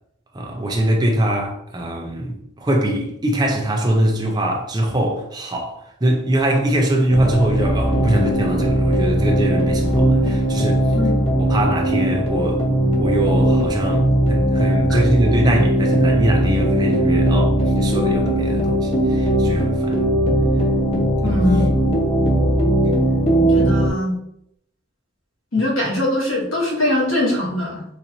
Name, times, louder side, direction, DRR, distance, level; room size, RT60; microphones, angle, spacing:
voice 1, 0.3-10.9 11.4-12.6 13.0-20.1 21.3-21.4, right 1 dB, 20° right, 0.5 m, -22 dB
sound 1, 7.1-23.9, right 1 dB, 30° left, 0.6 m, -18 dB
voice 2, 21.2-21.7 23.3-24.1 25.5-27.9, left 1 dB, 75° left, 1.4 m, -21 dB
4.0 x 2.5 x 2.9 m
head